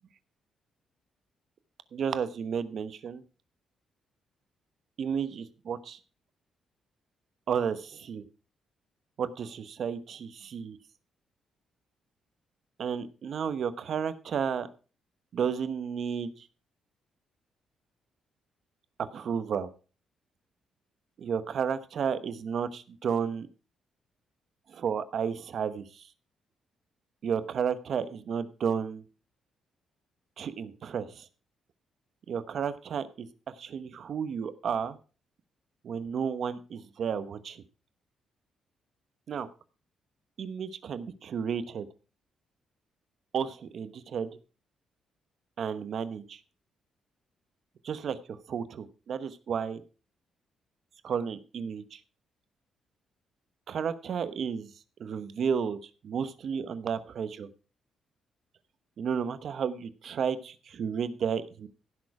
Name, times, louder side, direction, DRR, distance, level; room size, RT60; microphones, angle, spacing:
voice 1, 1.9-3.2 5.0-6.0 7.5-8.3 9.2-10.8 12.8-14.7 15.3-16.5 19.0-19.7 21.2-23.5 24.7-26.1 27.2-29.0 30.4-31.3 32.3-33.3 33.6-35.0 35.8-37.6 39.3-39.5 40.4-41.9 43.3-44.3 45.6-46.4 47.8-49.8 51.0-52.0 53.7-54.7 55.0-57.5 59.0-61.7, right 7 dB, 55° right, 12 dB, 0.9 m, -32 dB
15.5 x 6.4 x 4.8 m, 0.36 s
cardioid pair, 140°, 0 cm